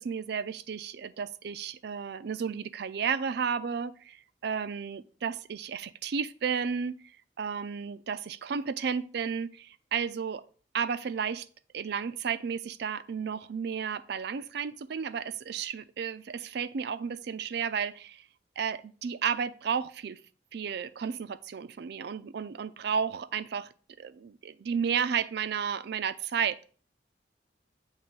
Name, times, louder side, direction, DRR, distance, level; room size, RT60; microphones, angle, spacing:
voice 1, 0.0-7.0 7.4-10.4 10.7-11.5 11.7-18.3 18.6-20.2 20.5-23.7 24.0-26.7, right 6 dB, 65° right, 12 dB, 0.4 m, -33 dB
7.2 x 3.2 x 5.2 m, 0.41 s
head